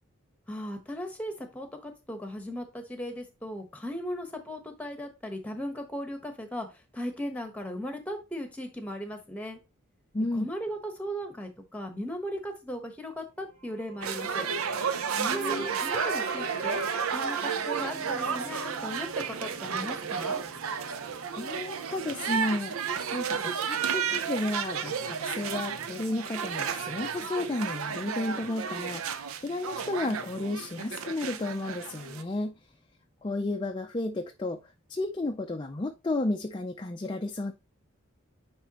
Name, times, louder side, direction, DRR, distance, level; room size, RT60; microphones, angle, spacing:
voice 1, 0.5-9.6 10.3-14.5 15.2-16.8 17.1-20.4, equal, 5° left, 1.1 m, -37 dB
voice 2, 10.1-10.5 15.1-15.7 21.4-22.8 23.1-32.5 33.2-37.5, left 2 dB, 20° left, 0.4 m, -32 dB
sound 1, 13.5-19.2, right 3 dB, 65° right, 2.9 m, -43 dB
sound 2, 14.0-32.2, right 6 dB, 80° right, 0.6 m, -32 dB
sound 3, 17.7-36.0, equal, 10° right, 1.8 m, -55 dB
10.0 x 3.4 x 2.9 m
head